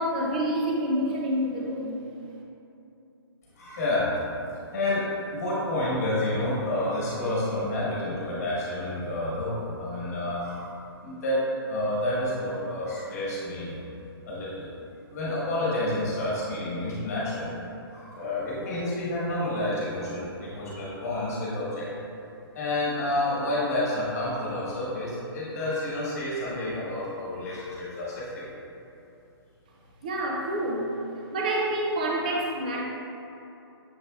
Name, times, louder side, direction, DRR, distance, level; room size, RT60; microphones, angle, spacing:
voice 1, 0.0-2.0 30.0-30.9 31.3-32.8, right 1 dB, 20° right, -2 dB, 0.3 m, -27 dB
voice 2, 3.5-4.1 4.7-10.7 11.0-11.4 11.7-13.8 14.3-14.7 15.1-21.9 22.5-28.5, left 1 dB, 40° left, -8 dB, 1.3 m, -29 dB
7.1 x 3.2 x 2.3 m, 2.8 s
hypercardioid pair, 175°, 13 cm